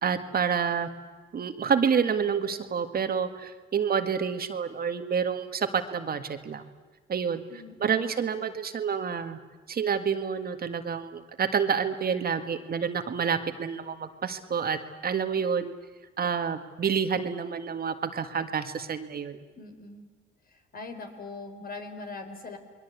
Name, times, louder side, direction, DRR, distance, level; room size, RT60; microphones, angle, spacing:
voice 1, 0.0-0.9 1.3-6.6 7.1-7.4 7.8-9.4 9.7-15.7 16.2-19.4, right 6 dB, 50° right, 8 dB, 1.8 m, -28 dB
voice 2, 7.5-8.0 19.5-20.1 20.7-22.6, left 3 dB, 50° left, 6 dB, 4.2 m, -41 dB
28.5 x 21.5 x 8.3 m, 1.4 s
cardioid pair, 90°, 20 cm